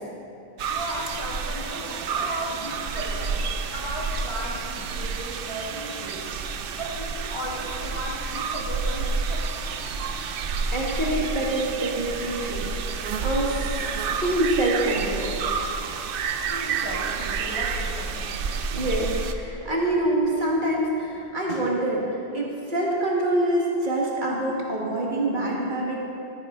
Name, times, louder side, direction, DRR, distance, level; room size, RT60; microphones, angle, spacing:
sound 1, 0.6-19.3, right 5 dB, 65° right, 0.7 m, -29 dB
voice 1, 0.7-3.3 3.7-6.3 6.8-9.5 16.5-18.3, equal, 25° left, -5 dB, 1.8 m, -35 dB
voice 2, 10.7-12.7 13.2-13.7 14.2-15.7 18.7-22.0 22.3-26.0, right 1 dB, 50° right, -3 dB, 1.6 m, -25 dB
12.5 x 9.6 x 3.6 m, 2.9 s
omnidirectional pair, 1.1 m